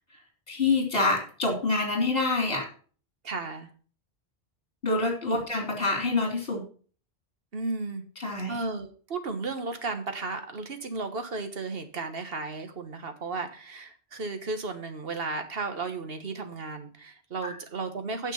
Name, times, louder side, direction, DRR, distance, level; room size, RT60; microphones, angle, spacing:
voice 1, 0.5-2.6 4.8-6.6 8.2-8.6 17.4-17.5, left 3 dB, 60° left, 2 dB, 3.4 m, -26 dB
voice 2, 3.2-3.7 5.3-5.4 7.5-8.0 8.5-18.3, right 3 dB, 65° right, 7 dB, 1.6 m, -34 dB
9.4 x 6.5 x 5.7 m, 0.40 s
omnidirectional pair, 1.1 m